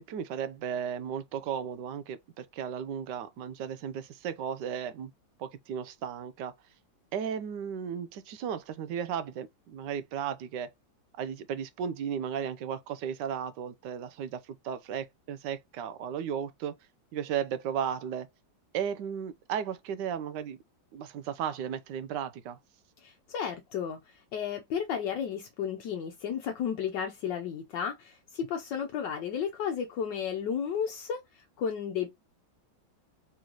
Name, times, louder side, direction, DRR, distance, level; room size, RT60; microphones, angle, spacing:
voice 1, 0.0-5.1 5.4-6.5 7.1-10.7 11.1-16.7 17.1-18.3 18.7-20.6 20.9-22.6, right 8 dB, 75° right, 1.2 m, -35 dB
voice 2, 23.0-32.1, left 7 dB, 75° left, 1.3 m, -33 dB
4.2 x 3.1 x 3.8 m
omnidirectional pair, 2.0 m